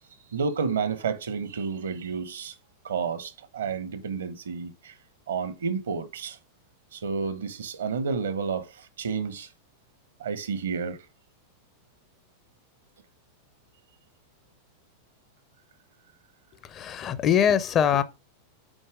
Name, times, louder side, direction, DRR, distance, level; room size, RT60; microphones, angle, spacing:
voice 1, 0.3-2.6 2.8-5.0 5.3-6.4 6.9-9.5 10.2-11.0, right 5 dB, 65° right, 0.9 m, -30 dB
voice 2, 16.6-18.0, left 8 dB, 30° left, 0.7 m, -23 dB
6.2 x 4.6 x 4.8 m
figure-of-eight pair, 90°, 0 cm